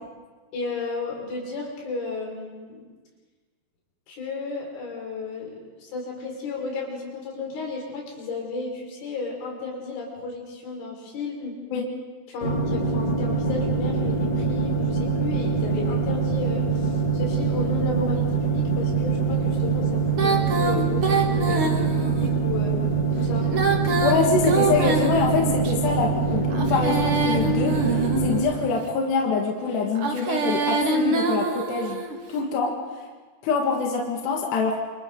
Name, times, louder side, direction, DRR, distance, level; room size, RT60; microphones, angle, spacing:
voice 1, 0.5-2.8 4.1-11.6 12.3-22.8 23.1-23.5, left 3 dB, 90° left, -2 dB, 7.5 m, -33 dB
sound 1, 12.4-28.4, right 4 dB, 30° left, 2.7 m, -24 dB
Female singing, 20.1-22.3 23.4-25.7 26.5-28.7 29.9-32.2, right 3 dB, 60° right, 1.4 m, -25 dB
voice 2, 24.0-32.0 32.3-32.7 33.4-34.8, left 4 dB, 65° left, 0 dB, 3.8 m, -25 dB
28.5 x 28.0 x 3.9 m, 1.4 s
omnidirectional pair, 5.4 m